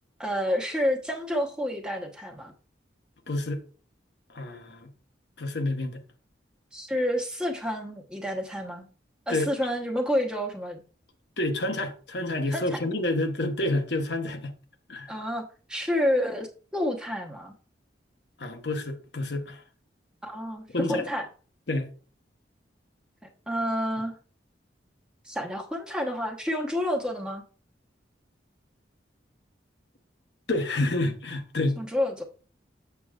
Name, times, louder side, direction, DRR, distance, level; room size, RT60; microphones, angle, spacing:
voice 1, 0.2-2.5 6.7-8.9 9.3-10.8 12.5-12.8 15.1-17.5 20.2-21.3 23.5-24.2 25.2-27.4 31.8-32.2, equal, 5° right, 0.9 m, -29 dB
voice 2, 3.3-3.6 4.3-4.9 5.4-6.0 9.3-9.5 11.4-14.6 14.9-15.1 18.4-19.6 20.7-21.1 21.7-21.9 30.5-31.8, left 2 dB, 65° left, 0.9 m, -29 dB
7.5 x 7.0 x 2.4 m
head